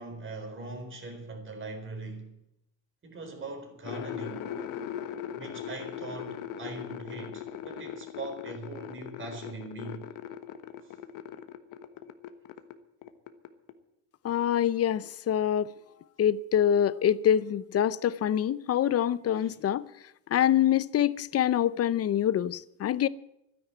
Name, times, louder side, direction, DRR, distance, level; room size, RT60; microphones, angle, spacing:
voice 1, 0.0-2.4 3.0-4.6 5.3-10.1 10.8-10.9 19.3-19.5, right 3 dB, 40° right, 4.3 m, -41 dB
sound 1, 3.8-12.8 13.0-13.7, left 9 dB, 75° left, 1.4 m, -40 dB
voice 2, 14.2-15.7 16.2-19.8 20.3-23.1, left 10 dB, 45° left, 0.7 m, -25 dB
12.5 x 10.5 x 9.2 m
cardioid pair, 110°, 33 cm